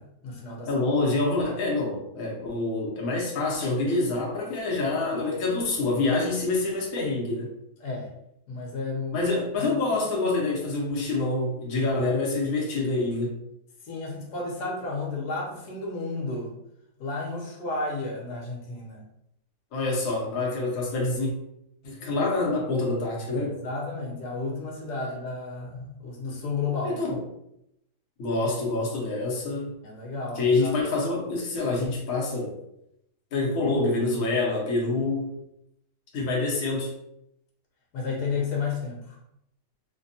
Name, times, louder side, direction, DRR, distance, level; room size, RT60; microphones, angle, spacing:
voice 1, 0.0-0.7 3.0-3.2 7.8-8.1 8.5-9.2 9.6-9.7 13.8-16.5 17.0-19.0 23.4-27.0 29.8-30.8 37.9-39.2, left 3 dB, 80° left, -2 dB, 1.3 m, -32 dB
voice 2, 0.7-7.5 9.1-13.3 19.7-21.3 21.8-23.6 26.8-27.2 28.2-29.7 30.4-32.6 33.3-35.3 36.1-36.9, left 3 dB, 60° left, -2 dB, 1.1 m, -26 dB
3.3 x 2.2 x 2.6 m, 0.80 s
omnidirectional pair, 1.7 m